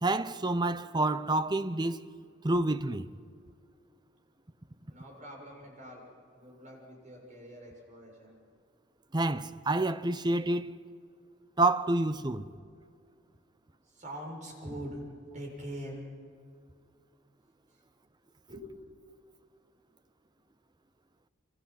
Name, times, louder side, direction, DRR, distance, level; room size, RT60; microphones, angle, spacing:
voice 1, 0.0-2.0 2.4-3.1 9.1-10.7 11.6-12.4, right 2 dB, 20° right, 0.7 m, -28 dB
voice 2, 4.9-6.0 6.3-8.4 12.2-12.4 13.9-15.0 15.3-16.0 18.5-18.7, equal, 35° right, 7.0 m, -43 dB
27.5 x 26.0 x 5.9 m
head